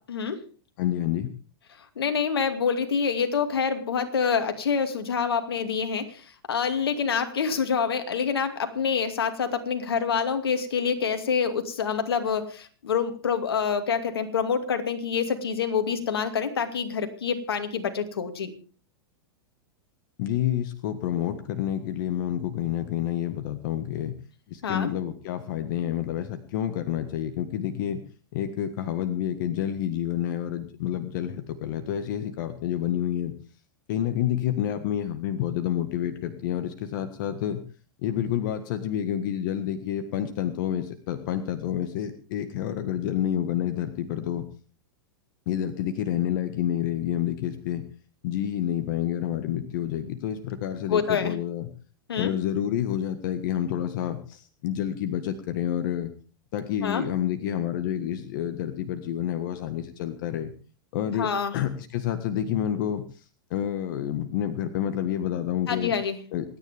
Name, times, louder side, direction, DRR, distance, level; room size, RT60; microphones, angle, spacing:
voice 1, 0.8-1.3 20.2-24.1 24.5-28.0 28.3-33.3 33.9-37.6 38.0-44.4 45.5-47.8 48.2-51.7 52.2-56.1 56.5-60.5 60.9-61.3 61.5-63.0 63.5-65.9 66.3-66.6, left 10 dB, 55° left, 8 dB, 1.6 m, -29 dB
voice 2, 2.0-18.5 24.6-24.9 50.9-51.3 52.1-52.3 56.8-57.0 61.2-61.5 65.7-66.2, left 6 dB, 80° left, 7 dB, 2.5 m, -26 dB
27.5 x 9.8 x 3.5 m, 0.37 s
hypercardioid pair, 115°, 13 cm